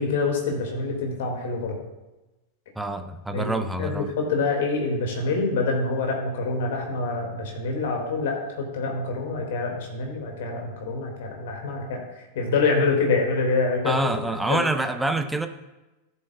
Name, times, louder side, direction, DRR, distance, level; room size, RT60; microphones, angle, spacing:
voice 1, 0.0-1.8 3.3-12.0 12.4-14.0 14.5-14.6, left 3 dB, 55° left, 2 dB, 2.0 m, -26 dB
voice 2, 2.8-4.1 13.8-15.5, right 1 dB, 5° right, 8 dB, 0.6 m, -26 dB
14.0 x 7.4 x 2.3 m, 1.0 s
figure-of-eight pair, 90°, 0 cm